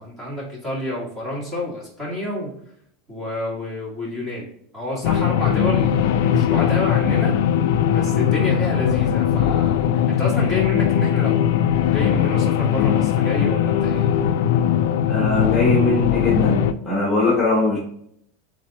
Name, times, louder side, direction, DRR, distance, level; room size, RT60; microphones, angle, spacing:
voice 1, 0.0-2.5 3.1-7.4 7.9-14.1, left 1 dB, 10° right, -4 dB, 1.5 m, -29 dB
sound 1, 5.0-16.7, left 9 dB, 70° left, 0.3 m, -19 dB
voice 2, 15.1-17.8, left 2 dB, 5° left, -5 dB, 1.1 m, -21 dB
3.7 x 3.2 x 3.8 m, 0.69 s
supercardioid pair, 170°, 0 cm